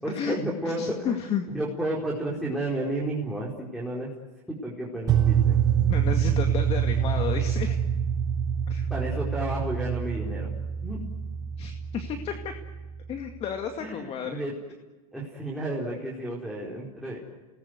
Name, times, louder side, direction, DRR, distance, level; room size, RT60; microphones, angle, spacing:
voice 1, 0.0-1.2 1.5-4.1 4.5-5.9 8.9-10.5 10.8-11.0 13.8-14.5 15.1-17.2, right 1 dB, ahead, -5 dB, 4.7 m, -32 dB
voice 2, 0.6-1.5 5.9-7.8 8.7-8.9 11.6-12.5 13.1-14.4, left 7 dB, 30° left, 5 dB, 2.2 m, -32 dB
sound 1, 5.1-13.2, right 8 dB, 20° right, 5.8 m, -26 dB
29.5 x 20.0 x 8.1 m, 1.2 s
supercardioid pair, 135°, 19 cm